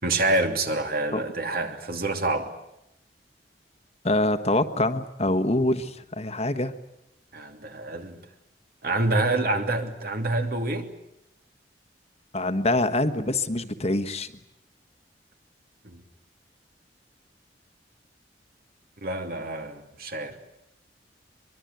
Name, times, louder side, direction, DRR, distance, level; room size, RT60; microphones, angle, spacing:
voice 1, 0.0-2.5 7.3-8.2 8.8-10.9 15.8-16.0 19.0-20.4, right 2 dB, 55° right, 5 dB, 3.0 m, -27 dB
voice 2, 4.0-6.7 12.3-14.3, left 2 dB, 35° left, 10 dB, 1.4 m, -25 dB
24.0 x 23.5 x 9.4 m, 0.85 s
head